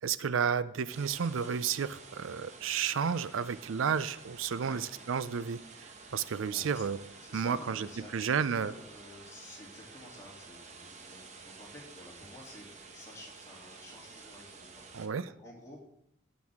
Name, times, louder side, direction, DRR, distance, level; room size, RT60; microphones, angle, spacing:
voice 1, 0.0-7.0 7.3-7.9 8.1-8.7 14.9-15.3, right 7 dB, 80° right, 15 dB, 0.4 m, -32 dB
sound 1, 0.9-15.1, right 4 dB, 35° right, 1.0 m, -51 dB
voice 2, 6.5-6.9 7.2-12.7 12.9-14.8 15.4-15.8, left 1 dB, 15° left, -4 dB, 2.9 m, -51 dB
18.0 x 6.2 x 3.6 m, 0.75 s
head